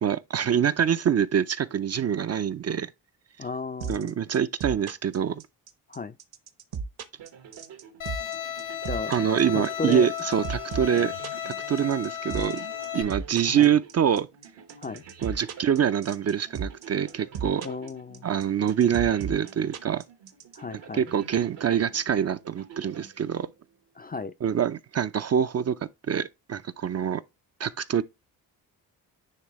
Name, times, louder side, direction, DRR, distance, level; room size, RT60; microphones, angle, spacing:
voice 1, 0.0-2.9 3.9-5.4 9.1-11.1 11.5-14.3 15.2-17.7 18.2-20.0 20.9-23.5 24.4-25.8 26.1-27.2 27.6-28.0, right 8 dB, 35° right, 0.4 m, -25 dB
voice 2, 3.4-4.1 5.9-6.2 8.9-9.2 9.5-10.1 13.5-13.7 14.8-15.0 17.6-18.3 20.5-21.0 24.0-24.3, left 4 dB, 20° left, 0.4 m, -34 dB
sound 1, 3.8-20.6, right 5 dB, 55° right, 1.0 m, -34 dB
sound 2, 7.2-23.8, right 7 dB, 75° right, 1.5 m, -49 dB
Bowed string instrument, 8.0-13.0, left 10 dB, 80° left, 1.5 m, -34 dB
9.6 x 3.3 x 3.0 m
supercardioid pair, 55°, 44 cm